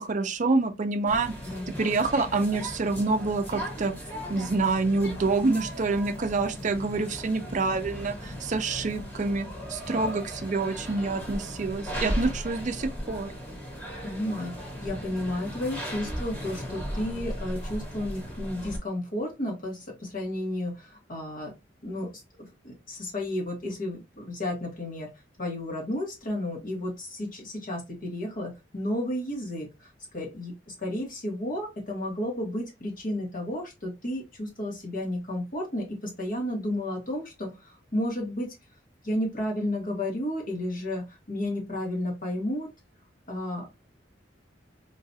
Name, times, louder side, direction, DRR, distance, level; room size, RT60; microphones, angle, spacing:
voice 1, 0.0-1.3 1.7-3.9 4.3-13.3, right 3 dB, 40° right, 0.5 m, -27 dB
sound 1, 1.1-18.8, equal, 10° left, 1.3 m, -37 dB
voice 2, 14.0-14.5 14.8-21.5 21.8-22.1 22.6-25.1 25.4-29.9 30.1-38.5 39.0-42.7 43.3-43.8, left 1 dB, 50° left, 1.5 m, -32 dB
3.9 x 2.5 x 2.7 m
head